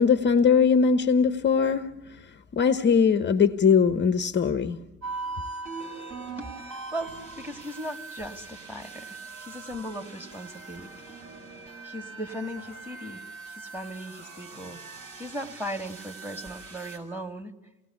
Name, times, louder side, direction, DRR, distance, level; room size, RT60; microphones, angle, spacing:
voice 1, 0.0-1.9 2.5-4.8, left 6 dB, 25° left, 1.0 m, -21 dB
sound 1, 5.0-17.0, right 4 dB, 45° right, 7.2 m, -41 dB
voice 2, 6.4-11.2 11.8-13.2 13.5-14.8 15.2-17.5, equal, 5° right, 2.2 m, -38 dB
29.0 x 18.5 x 7.1 m
figure-of-eight pair, 65°, 40 cm